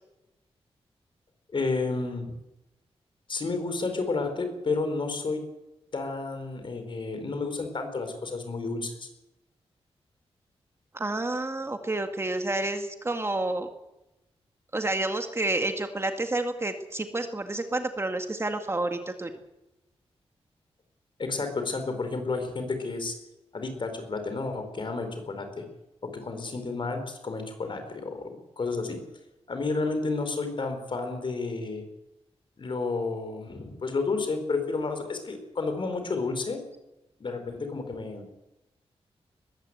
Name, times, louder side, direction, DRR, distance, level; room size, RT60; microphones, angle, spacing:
voice 1, 1.5-2.3 3.3-5.4 5.9-9.1 21.2-23.1 23.5-25.6 26.0-28.3 28.6-29.0 29.5-31.8 32.6-36.6 37.2-38.2, left 3 dB, 50° left, 7 dB, 4.8 m, -31 dB
voice 2, 10.9-13.7 14.7-19.3, right 2 dB, 25° right, 6 dB, 1.9 m, -29 dB
21.0 x 15.5 x 8.2 m, 0.95 s
wide cardioid pair, 120°, 11 cm